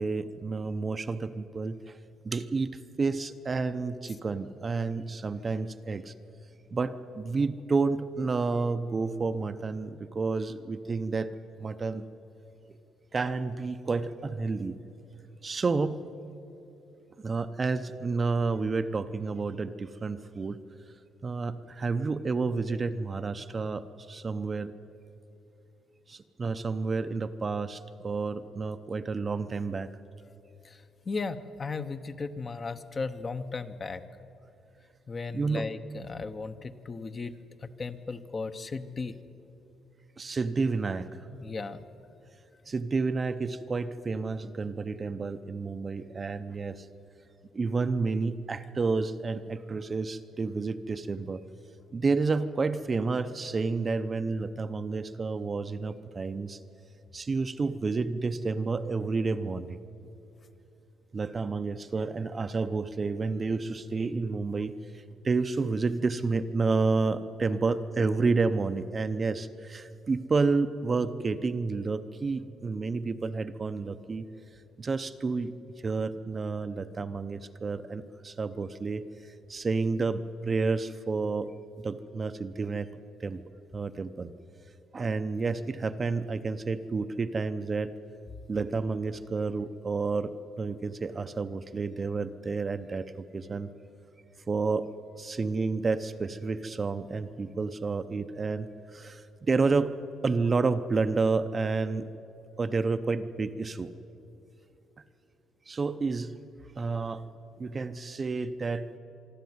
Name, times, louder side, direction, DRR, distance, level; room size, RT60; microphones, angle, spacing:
voice 1, 0.0-2.0 2.2-6.1 6.7-11.3 11.6-12.0 13.1-14.8 15.4-16.0 17.2-20.6 21.2-24.7 26.1-29.9 35.3-35.7 40.2-41.1 42.7-46.9 47.5-51.4 51.9-56.6 57.1-59.8 61.1-74.3 74.8-75.5 75.8-82.9 83.2-83.4 83.7-84.3 84.9-87.9 88.5-93.7 94.5-94.9 95.2-100.0 100.2-102.1 102.6-103.9 105.7-106.3 106.8-107.2 107.6-108.9, right 4 dB, 25° right, 10 dB, 0.6 m, -30 dB
voice 2, 30.6-34.0 35.1-39.2 41.3-41.8, left 4 dB, 25° left, 10 dB, 0.8 m, -36 dB
25.0 x 12.0 x 9.4 m, 2.8 s
cardioid pair, 150°, 0 cm